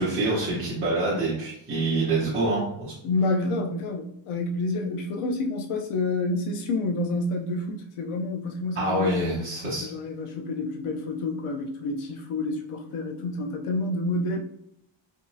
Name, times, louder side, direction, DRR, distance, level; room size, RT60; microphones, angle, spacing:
voice 1, 0.0-2.9 8.7-9.9, right 2 dB, 25° right, -10 dB, 1.0 m, -26 dB
voice 2, 3.0-9.5 9.8-14.4, left 2 dB, 85° left, 3 dB, 0.8 m, -29 dB
3.6 x 2.8 x 2.7 m, 0.75 s
wide cardioid pair, 175°, 49 cm